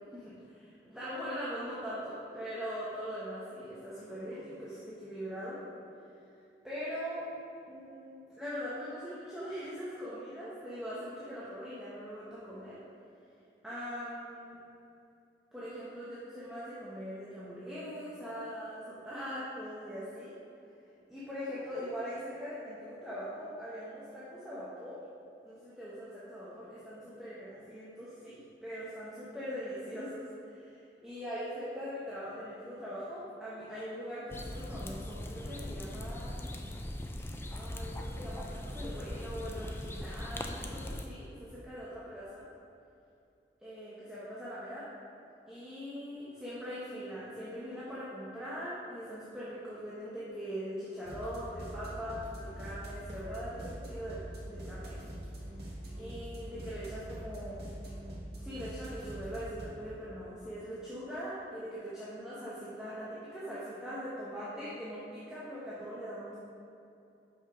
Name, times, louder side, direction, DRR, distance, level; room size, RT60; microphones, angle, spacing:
voice 1, 0.1-5.6 6.6-7.3 7.7-12.8 13.6-14.6 15.5-20.4 21.1-25.0 25.4-36.4 37.5-42.4 43.6-44.9 45.5-54.2 54.5-55.0 55.9-57.6 58.4-66.4, equal, 5° right, -11 dB, 1.0 m, -41 dB
sound 1, 34.3-41.1, left 1 dB, 15° left, 0.3 m, -40 dB
sound 2, 51.0-59.6, right 1 dB, 70° right, 1.6 m, -43 dB
5.9 x 5.5 x 5.0 m, 2.6 s
head